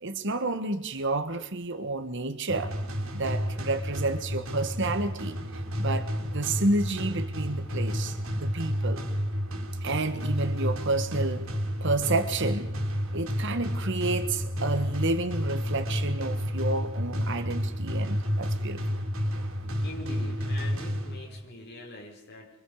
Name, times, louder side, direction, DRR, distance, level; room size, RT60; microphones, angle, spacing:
voice 1, 0.0-2.7 3.1-5.4 5.8-9.0 9.8-11.5 11.8-12.7 13.1-18.8, right 2 dB, 60° right, 9 dB, 1.6 m, -30 dB
sound 1, 2.5-21.5, equal, 80° right, 3.3 m, -31 dB
voice 2, 19.8-22.6, left 2 dB, 55° left, 0 dB, 5.5 m, -42 dB
26.0 x 25.0 x 5.0 m, 0.81 s
head